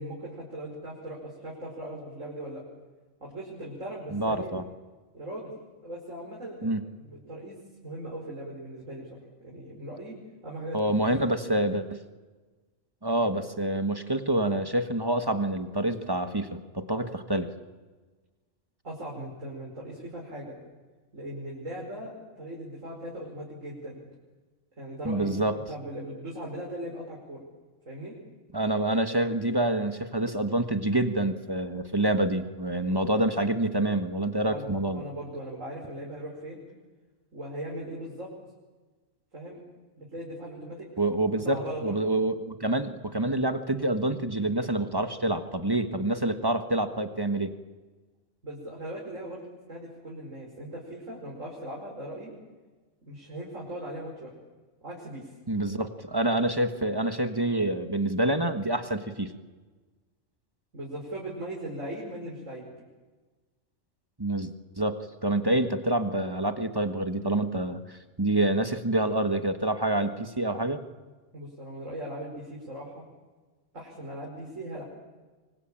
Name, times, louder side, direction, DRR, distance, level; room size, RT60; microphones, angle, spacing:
voice 1, 0.0-2.6 3.2-4.5 5.1-5.5 5.8-7.6 7.8-9.1 9.4-10.2 10.4-11.1 18.8-20.6 21.1-24.0 24.8-27.4 27.9-28.2 34.4-36.6 37.3-38.3 39.3-39.6 40.0-40.9 41.4-42.0 48.4-49.4 49.7-52.3 53.0-54.3 54.8-55.3 60.7-62.6 71.3-73.0 73.7-74.8, right 1 dB, 90° right, -3 dB, 5.7 m, -39 dB
voice 2, 4.1-4.6 6.6-6.8 10.7-12.0 13.0-17.5 25.0-25.6 28.5-35.0 41.0-47.5 55.5-59.3 64.2-64.5 64.8-70.8, right 1 dB, 20° right, 8 dB, 1.5 m, -27 dB
25.0 x 24.5 x 8.9 m, 1.3 s
omnidirectional pair, 1.3 m